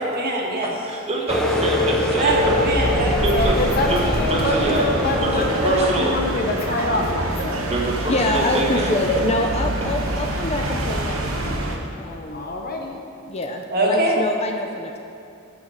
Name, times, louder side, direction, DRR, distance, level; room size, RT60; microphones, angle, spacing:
voice 1, 0.0-0.7 1.4-1.5 2.1-3.5 13.7-14.2, right 1 dB, 45° right, -2 dB, 1.7 m, -22 dB
voice 2, 0.6-2.4 3.2-3.6 3.9-4.9 5.2-6.2 7.7-9.0, right 2 dB, 30° right, -1 dB, 1.4 m, -25 dB
sound 1, 1.3-6.9, left 1 dB, ahead, 0.8 m, -26 dB
sound 2, 2.3-11.8, right 1 dB, 70° right, 1.1 m, -26 dB
voice 3, 3.3-7.6 12.3-12.9, left 1 dB, 45° left, 1 dB, 1.1 m, -24 dB
voice 4, 8.1-11.6 12.0-12.5 13.3-15.0, left 2 dB, 30° left, 3 dB, 0.5 m, -25 dB
9.6 x 7.1 x 5.7 m, 2.6 s
head